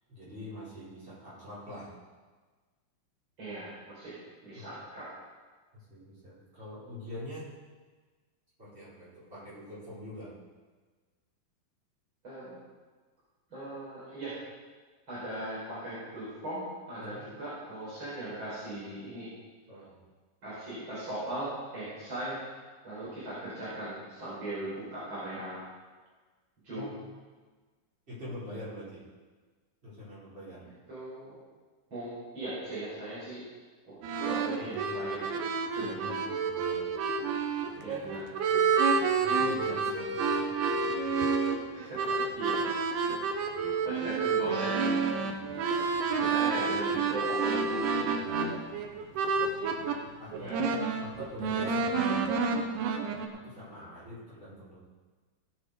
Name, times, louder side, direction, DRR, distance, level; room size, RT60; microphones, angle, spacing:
voice 1, 0.1-1.9 4.5-4.7 5.7-7.5 8.6-10.3 17.0-17.3 19.7-20.0 26.7-27.0 28.1-29.0 29.8-30.6 34.6-35.1 35.8-36.9 37.7-38.1 39.2-41.1 48.1-48.5 50.2-52.3 53.3-54.8, left 1 dB, 15° right, -10 dB, 4.9 m, -45 dB
voice 2, 3.4-4.1 4.4-5.0 12.2-12.5 13.5-14.3 15.1-19.3 20.4-22.4 22.8-25.6 26.6-26.9 30.9-31.4 31.9-33.4 33.9-34.0 34.2-35.3 35.7-36.1 37.8-38.2 41.7-42.6 43.9-44.9 46.1-47.8 50.3-50.6, right 1 dB, 30° right, -12 dB, 5.3 m, -38 dB
sound 1, 34.0-50.0 50.3-53.3, right 5 dB, 90° right, 3.0 m, -29 dB
16.5 x 7.7 x 5.1 m, 1.4 s
omnidirectional pair, 4.4 m